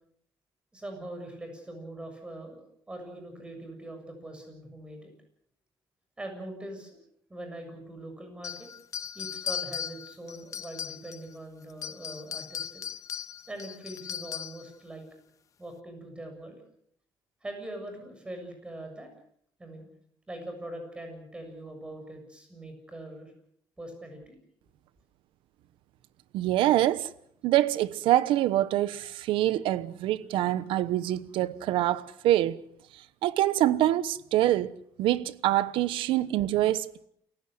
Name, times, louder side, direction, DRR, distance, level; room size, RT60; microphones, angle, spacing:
voice 1, 0.7-2.6 2.9-5.1 6.2-7.0 7.3-8.7 9.1-12.9 13.5-15.0 15.6-16.6 17.4-19.1 19.6-19.9 20.3-23.3 23.8-24.4, right 1 dB, 10° right, 7.1 m, -42 dB
sound 1, 8.4-11.3 11.7-14.7, left 9 dB, 40° left, 0.9 m, -37 dB
voice 2, 26.3-27.1 27.4-32.6 32.9-37.0, right 14 dB, 75° right, 1.1 m, -25 dB
28.5 x 16.0 x 7.9 m
cardioid pair, 155°, 9 cm